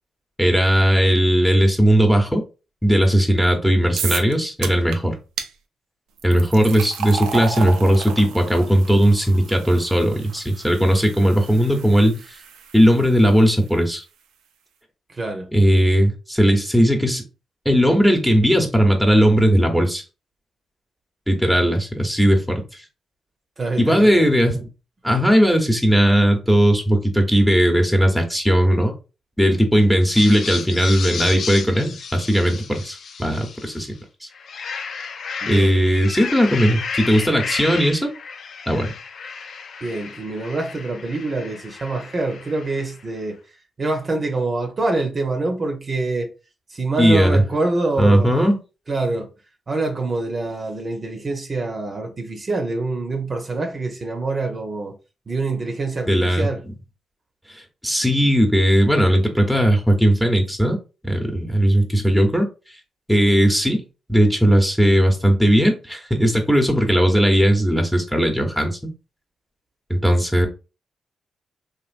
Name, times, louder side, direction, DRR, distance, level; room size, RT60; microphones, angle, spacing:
voice 1, 0.4-2.4 2.8-5.2 6.2-12.2 12.7-14.0 15.5-17.2 17.6-20.0 21.3-22.6 23.8-24.7 25.0-28.9 29.4-33.9 35.5-38.1 38.7-38.9 47.0-47.4 48.0-48.6 56.1-56.5 57.8-60.8 61.0-62.5 63.1-63.8 64.1-68.9 69.9-70.5, equal, ahead, 0.9 m, -17 dB
sound 1, 4.0-4.3 4.6-5.0 5.4-5.5 6.2-13.3, right 7 dB, 90° right, 0.3 m, -32 dB
voice 2, 15.1-15.5 23.6-24.3 35.4-35.9 39.8-43.4 43.8-46.3 46.7-48.3 48.9-49.3 49.7-54.9 55.3-56.6, right 3 dB, 45° right, 0.8 m, -25 dB
sound 2, 30.0-33.9 34.3-43.0, left 5 dB, 65° left, 0.4 m, -33 dB
3.1 x 2.4 x 2.5 m
supercardioid pair, 50°, 0 cm